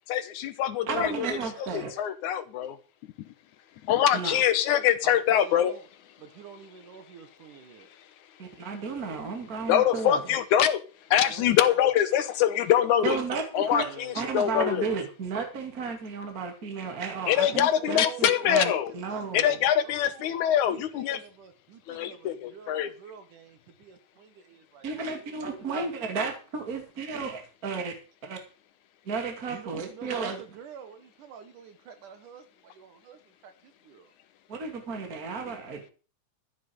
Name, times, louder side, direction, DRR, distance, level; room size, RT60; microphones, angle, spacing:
voice 1, 0.1-1.4 1.7-2.8 3.8-5.7 9.7-10.8 11.1-13.2 13.5-14.9 17.3-18.9 19.3-21.2 21.9-22.9, left 10 dB, 75° left, 2.3 m, -24 dB
voice 2, 0.9-1.9 4.1-4.4 8.4-10.2 13.0-13.9 14.1-19.6 24.8-27.9 28.2-28.4 29.0-30.4 34.5-35.9, right 4 dB, 30° right, 2.6 m, -33 dB
voice 3, 5.0-5.8 6.2-7.9 11.1-11.8 13.8-14.2 17.5-18.5 18.8-19.5 19.8-24.9 25.2-26.1 29.5-34.1, right 8 dB, 80° right, 3.0 m, -47 dB
14.0 x 9.3 x 5.2 m
omnidirectional pair, 3.6 m